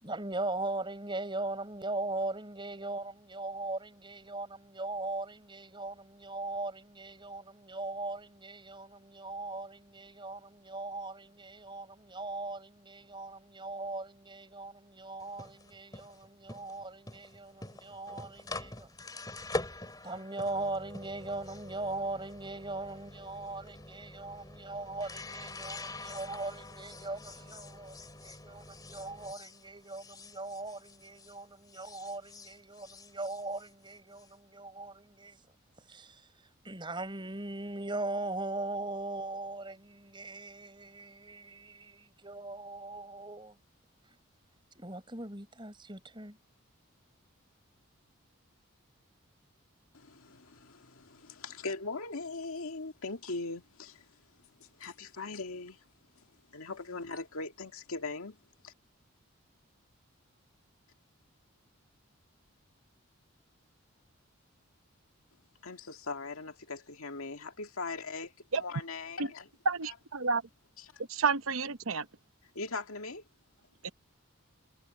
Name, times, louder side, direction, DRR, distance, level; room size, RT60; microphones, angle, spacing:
voice 1, 0.0-18.9 20.0-35.4 35.8-43.6 44.7-46.4, right 2 dB, 20° right, 4.5 m, -40 dB
sound 1, 15.2-31.4 31.7-34.3, left 2 dB, 20° left, 3.3 m, -45 dB
voice 2, 49.9-55.9 56.2-58.7 65.6-69.5 69.9-70.0 70.8-71.0 72.4-73.2, left 3 dB, 80° left, 2.0 m, -41 dB
voice 3, 69.7-70.4 71.1-72.0, right 4 dB, 75° right, 0.9 m, -30 dB
head